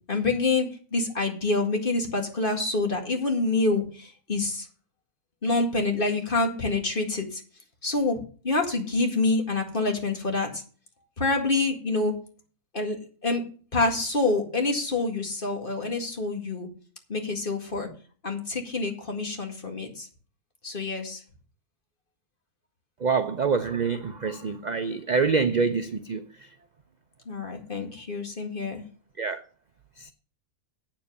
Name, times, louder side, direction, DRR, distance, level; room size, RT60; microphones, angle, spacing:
voice 1, 0.1-4.7 5.4-7.4 7.8-10.6 11.2-12.1 12.7-13.4 13.7-16.7 17.1-17.9 18.2-20.1 20.6-21.2 27.3-28.8, left 3 dB, 35° left, 2.1 m, -27 dB
voice 2, 23.0-26.5 29.2-29.4 30.0-30.1, right 5 dB, 50° right, 0.5 m, -26 dB
8.6 x 7.4 x 6.6 m
omnidirectional pair, 1.5 m